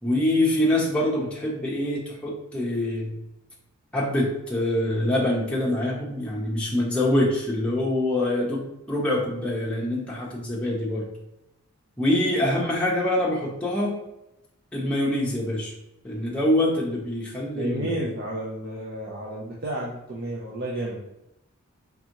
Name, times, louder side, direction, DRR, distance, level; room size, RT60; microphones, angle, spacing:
voice 1, 0.0-3.1 3.9-11.1 12.0-14.0 14.7-15.7 16.0-18.1, left 1 dB, 5° left, -4 dB, 0.9 m, -25 dB
voice 2, 17.5-21.0, right 1 dB, 45° right, -4 dB, 0.7 m, -31 dB
3.9 x 3.6 x 3.0 m, 0.88 s
head